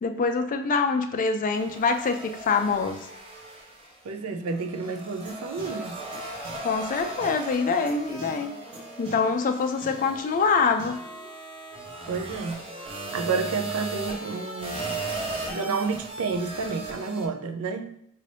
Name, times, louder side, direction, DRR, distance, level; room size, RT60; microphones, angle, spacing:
voice 1, 0.0-3.0 6.6-8.5 9.0-11.0, left 4 dB, 40° left, 7 dB, 0.3 m, -25 dB
sound 1, 1.5-4.1 4.5-17.3, right 3 dB, 25° right, 0.7 m, -37 dB
voice 2, 4.0-6.0 12.1-12.6 13.1-15.0 15.5-17.9, right 4 dB, 70° right, 6 dB, 0.5 m, -30 dB
sound 2, 5.2-5.3 5.6-5.7 6.1-6.2 6.4-6.5 7.2-7.3 7.9-8.0 8.2-8.3 8.7-8.8 9.0-9.1 9.8-9.9 10.8-10.9, right 1 dB, 50° right, 1.4 m, -42 dB
Wind instrument woodwind instrument, 8.1-16.5, left 1 dB, 5° left, 1.3 m, -50 dB
5.3 x 2.6 x 3.3 m, 0.72 s
head